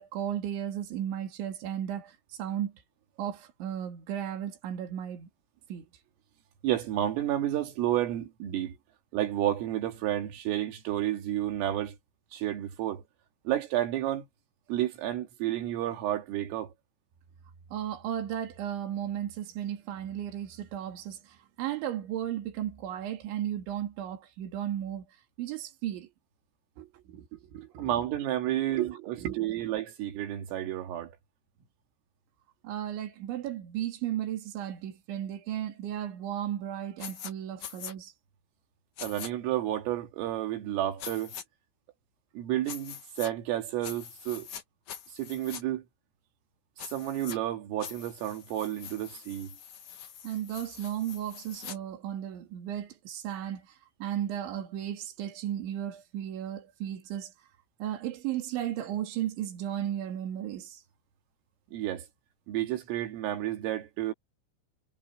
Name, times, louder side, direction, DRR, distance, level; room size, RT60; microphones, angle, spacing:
voice 1, 0.0-2.7 3.2-5.3 5.7-5.9 17.7-21.2 21.6-25.1 25.4-26.1 26.8-27.9 28.8-29.6 32.6-38.1 50.2-53.6 54.0-57.3 57.8-60.8, right 11 dB, 70° right, 5.1 m, -35 dB
voice 2, 6.6-8.8 9.1-12.0 12.3-13.0 13.5-14.3 14.7-16.7 27.8-31.1 39.0-41.3 42.3-44.5 45.1-45.8 46.9-49.5 61.7-62.1 62.5-64.1, right 13 dB, 85° right, 5.0 m, -31 dB
sound 1, 37.0-37.3 37.6-37.9 39.0-39.3 41.0-41.4 42.7-43.3 43.8-44.6 44.9-45.6 46.8-47.4 47.8-51.8, left 8 dB, 55° left, 2.2 m, -43 dB
omnidirectional pair, 5.7 m